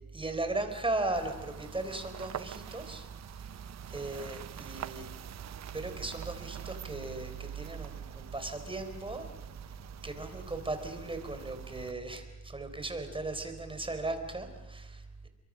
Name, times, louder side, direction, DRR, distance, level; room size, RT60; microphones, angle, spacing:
voice 1, 0.1-3.1 3.9-5.1 5.7-9.3 10.0-15.3, right 2 dB, 15° right, 8 dB, 4.2 m, -37 dB
sound 1, 1.1-11.9, right 11 dB, 60° right, 0.9 m, -45 dB
29.5 x 23.5 x 6.5 m, 1.0 s
cardioid pair, 90°, 30 cm